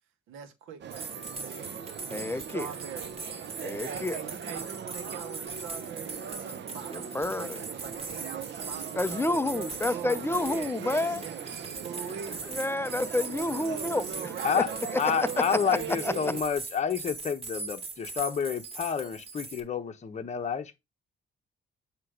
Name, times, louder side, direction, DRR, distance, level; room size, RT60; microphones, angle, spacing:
voice 1, 0.3-1.7 2.3-3.2 3.8-11.4 11.8-12.4 13.5-15.3, right 7 dB, 90° right, 1.2 m, -42 dB
sound 1, 0.8-16.4, right 8 dB, 60° right, 0.8 m, -40 dB
sound 2, 0.9-19.6, right 3 dB, 30° right, 2.0 m, -41 dB
voice 2, 2.1-2.7 3.6-4.2 6.9-7.6 9.0-11.2 12.4-14.1 14.6-14.7 14.9-15.0 15.5-15.6 16.0-16.1, left 2 dB, 10° left, 0.5 m, -29 dB
voice 3, 15.0-20.8, left 7 dB, 35° left, 0.9 m, -29 dB
7.7 x 2.9 x 4.9 m
cardioid pair, 90°, 20 cm